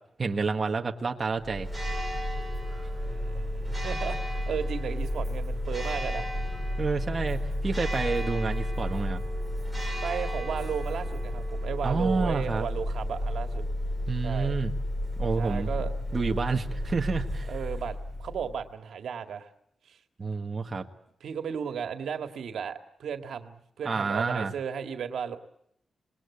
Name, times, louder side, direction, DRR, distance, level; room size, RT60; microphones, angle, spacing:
voice 1, 0.2-1.7 6.8-9.2 11.8-12.7 14.1-14.7 15.2-15.7 16.1-17.5 20.2-20.9 23.8-24.5, right 4 dB, 30° right, 3 dB, 1.6 m, -29 dB
Church bell, 1.4-18.6, left 1 dB, 10° left, 6.9 m, -32 dB
voice 2, 3.1-6.3 10.0-13.6 14.2-14.5 15.4-15.9 17.5-19.5 19.9-20.0 21.2-25.4, right 7 dB, 85° right, 7 dB, 1.8 m, -35 dB
27.0 x 20.5 x 8.4 m, 0.74 s
wide cardioid pair, 160°, 0 cm